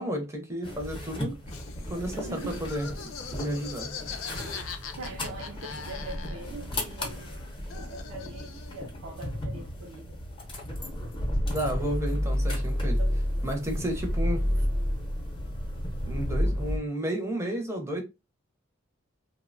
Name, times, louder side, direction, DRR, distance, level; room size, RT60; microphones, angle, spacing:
voice 1, 0.0-1.4 1.9-2.9 3.3-3.9 11.5-13.0 13.4-14.5 16.1-18.0, right 1 dB, 15° right, 0.6 m, -32 dB
sound 1, 0.6-16.8, equal, 25° left, 0.7 m, -32 dB
Laughter, 1.5-6.6 6.9-8.9, left 6 dB, 80° left, 0.4 m, -42 dB
voice 2, 2.1-2.7 5.0-10.2 13.0-13.2, right 2 dB, 70° right, 0.5 m, -43 dB
2.7 x 2.0 x 2.5 m
head